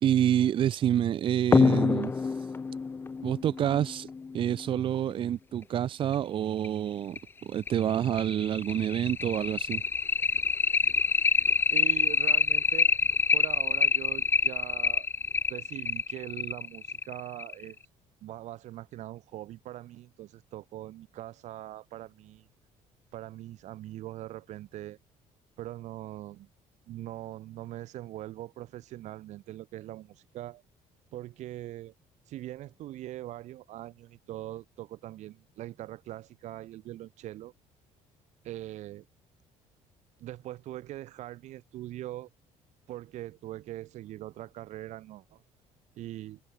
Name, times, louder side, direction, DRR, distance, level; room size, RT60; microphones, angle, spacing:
voice 1, 0.0-2.5 3.2-9.8, right 10 dB, 40° right, 0.8 m, -28 dB
sound 1, 1.5-4.7 6.1-6.2 6.6-6.7 7.2-7.3 7.7-17.7, left 4 dB, 15° left, 0.5 m, -26 dB
voice 2, 11.7-12.9 13.3-15.1 15.5-17.8 18.2-22.5 23.1-25.0 25.6-26.5 26.9-30.6 31.1-31.9 32.3-37.5 38.4-39.0 40.2-42.3 42.9-45.4 46.0-46.4, right 14 dB, 65° right, 2.6 m, -42 dB
cardioid pair, 160°, 13 cm